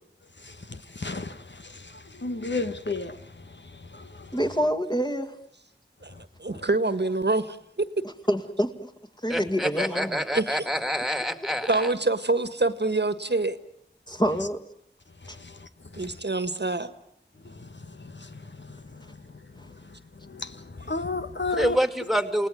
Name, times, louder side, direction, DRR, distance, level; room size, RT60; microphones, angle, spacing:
voice 1, 0.4-1.9 2.2-3.2 3.9-4.3 15.4-15.5 15.9-16.1 17.6-17.7 18.1-18.3 18.6-19.0 20.3-21.8, left 3 dB, 75° left, 1.4 m, -33 dB
voice 2, 4.3-5.4 8.0-8.9 9.2-10.2 14.1-14.6 15.3-15.4 19.6-19.7, equal, 20° left, 2.3 m, -27 dB
voice 3, 6.4-7.8 10.3-10.7 11.7-13.6 15.9-16.9, right 2 dB, 65° right, 1.6 m, -26 dB
voice 4, 9.3-11.9 21.5-22.5, equal, ahead, 2.3 m, -27 dB
29.0 x 18.5 x 9.4 m
wide cardioid pair, 45°, 19 cm